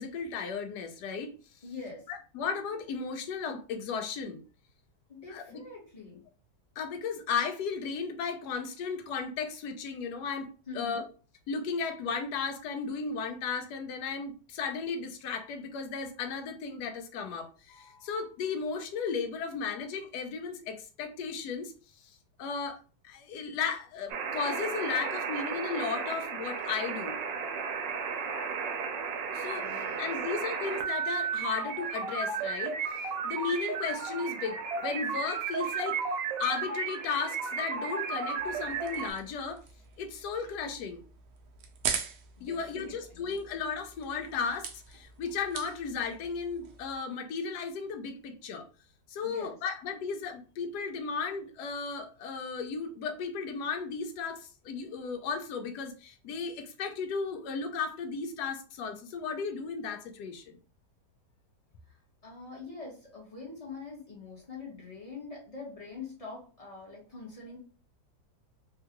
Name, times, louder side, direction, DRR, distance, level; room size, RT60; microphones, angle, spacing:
voice 1, 0.0-1.3 2.1-4.4 5.3-5.6 6.8-10.5 10.7-11.0 11.5-21.7 22.4-22.8 23.0-27.2 29.3-29.7 30.0-32.8 33.2-36.0 36.4-39.6 40.0-41.0 42.4-48.7 49.1-60.6, left 5 dB, 75° left, 1.1 m, -35 dB
voice 2, 1.6-2.1 5.1-6.2 10.7-11.1 29.3-30.1 42.4-43.3 49.2-49.6 61.9-67.6, left 4 dB, 30° left, 0.8 m, -44 dB
sound 1, 24.1-39.1, right 5 dB, 90° right, 1.3 m, -34 dB
sound 2, 38.3-47.0, right 7 dB, 70° right, 1.0 m, -42 dB
3.5 x 2.2 x 2.8 m
omnidirectional pair, 1.9 m